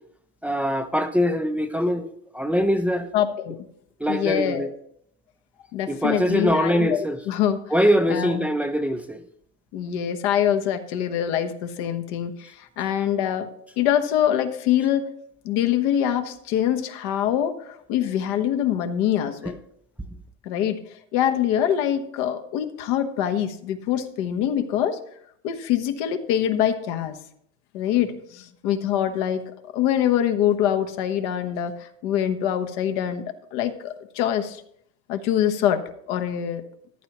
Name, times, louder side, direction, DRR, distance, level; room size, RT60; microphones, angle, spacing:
voice 1, 0.4-2.1 2.3-3.1 4.0-4.7 5.9-7.2 7.7-9.2 19.5-19.6, equal, 5° right, 0.5 m, -23 dB
voice 2, 3.1-3.7 4.1-4.7 5.7-7.6 8.1-8.5 9.7-13.5 13.8-15.1 15.4-19.6 20.4-20.8 21.1-25.0 25.4-27.2 27.7-33.2 33.5-34.6 35.1-35.8 36.1-36.6, left 10 dB, 70° left, 1.2 m, -24 dB
14.0 x 10.5 x 3.0 m
supercardioid pair, 125°, 34 cm